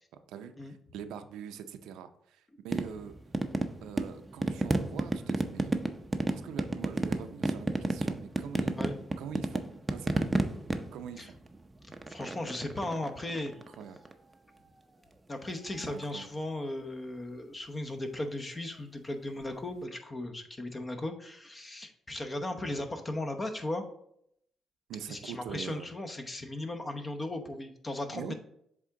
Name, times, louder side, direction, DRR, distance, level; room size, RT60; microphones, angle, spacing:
voice 1, 0.3-3.1 3.8-5.8 6.3-9.6 9.9-10.3 10.9-11.3 13.8-14.0 15.8-16.3 24.9-25.9 28.1-28.3, right 8 dB, 90° right, 9 dB, 0.5 m, -43 dB
sound 1, 2.7-14.1 15.8-16.2 19.4-19.5, right 2 dB, 15° right, 0.6 m, -33 dB
voice 2, 12.1-13.5 15.3-23.8 25.1-28.3, left 1 dB, 25° left, 5 dB, 0.9 m, -37 dB
7.6 x 3.6 x 3.8 m, 0.72 s
cardioid pair, 90°, 0 cm